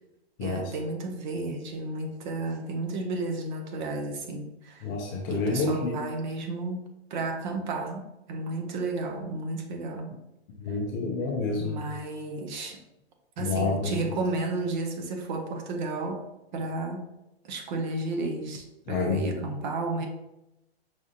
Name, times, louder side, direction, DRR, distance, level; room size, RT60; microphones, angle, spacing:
voice 1, 0.4-4.9 5.3-10.1 10.7-10.8 11.6-12.8 13.4-16.2 16.5-17.1 17.4-20.1, right 2 dB, 45° right, 5 dB, 0.7 m, -32 dB
voice 2, 4.8-6.0 10.6-11.8 13.4-13.9 18.9-19.4, left 4 dB, 20° left, -1 dB, 0.4 m, -28 dB
5.0 x 2.4 x 2.6 m, 0.92 s
hypercardioid pair, 140°, 31 cm